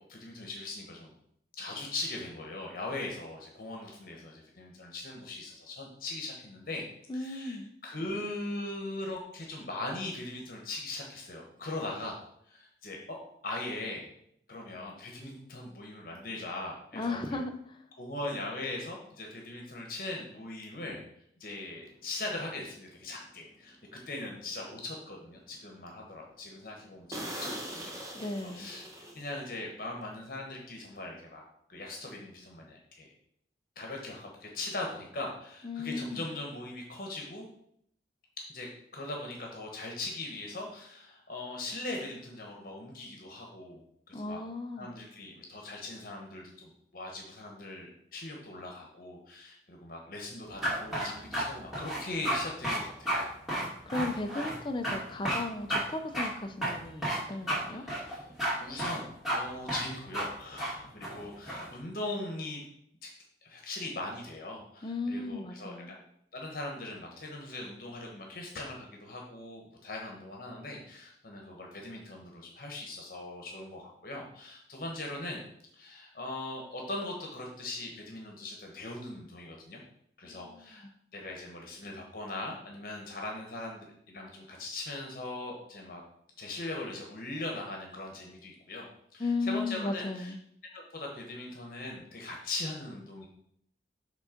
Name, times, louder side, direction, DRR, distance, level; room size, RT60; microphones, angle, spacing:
voice 1, 0.1-1.1 1.6-6.9 7.1-12.2 12.5-13.2 13.4-14.1 14.5-17.4 18.0-21.0 21.4-28.0 28.3-28.9 29.1-31.4 31.7-33.1 33.8-37.5 38.4-43.8 44.1-44.4 44.8-53.3 57.4-58.2 58.6-62.6 63.0-63.1 63.4-66.0 66.3-75.4 75.7-79.8 80.2-80.9 81.1-86.0 86.4-88.9 89.1-90.3 90.7-93.3, left 2 dB, 50° left, 0 dB, 1.1 m, -40 dB
voice 2, 7.1-7.7 16.9-17.8 28.1-28.7 35.6-36.2 44.1-44.9 53.9-57.8 64.8-65.9 80.2-80.7 89.2-90.4, left 3 dB, 25° left, 6 dB, 0.6 m, -35 dB
sound 1, 21.9-22.0 22.5-22.8 23.3-23.4 23.7-23.8 24.3-24.9 25.3-25.4 25.8-25.9 26.2-26.3 26.7-26.8 27.1-29.7 29.9-30.1, equal, 15° right, 0.9 m, -41 dB
sound 2, 50.6-51.4 51.7-52.4 52.6-52.8 53.1-53.2 53.5-54.6 54.8-55.0 55.2-55.4 55.7-55.8 56.1-56.3 56.6-57.2 57.5-57.6 57.9-58.5 58.8-59.0 59.2-59.4 59.7-59.8 60.1-60.3 60.6-60.7 61.0-61.7, right 1 dB, ahead, 2.2 m, -31 dB
6.2 x 3.7 x 5.1 m, 0.70 s
head